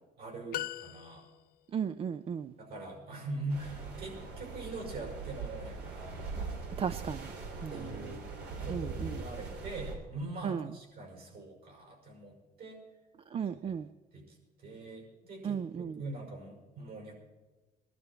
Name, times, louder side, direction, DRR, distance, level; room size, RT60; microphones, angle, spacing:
voice 1, 0.2-1.3 2.6-6.3 7.7-8.3 8.6-12.8 13.4-13.8 14.1-17.1, right 2 dB, 65° right, 1 dB, 5.8 m, -43 dB
sound 1, 0.5-1.7, left 14 dB, 65° left, 0.4 m, -40 dB
voice 2, 1.7-2.5 6.8-7.3 7.6-8.2 8.7-9.2 10.4-10.7 13.3-13.9 15.4-16.0, right 7 dB, 35° right, 12 dB, 0.4 m, -35 dB
sound 2, 3.5-9.9, right 4 dB, 85° right, 3.0 m, -41 dB
20.5 x 12.0 x 4.5 m, 1.2 s
cardioid pair, 110°, 17 cm